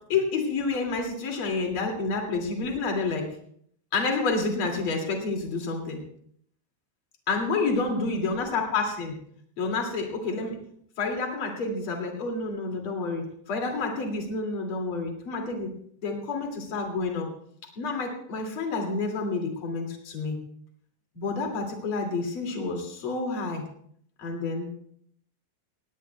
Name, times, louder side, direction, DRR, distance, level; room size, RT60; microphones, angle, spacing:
voice 1, 0.1-3.3 3.9-6.0 7.3-9.2 9.6-10.6 11.0-13.2 13.5-15.7 16.0-17.3 17.8-20.4 21.1-23.6 24.2-24.7, left 3 dB, 35° left, 1 dB, 2.4 m, -29 dB
18.0 x 18.0 x 2.3 m, 0.65 s
omnidirectional pair, 5.2 m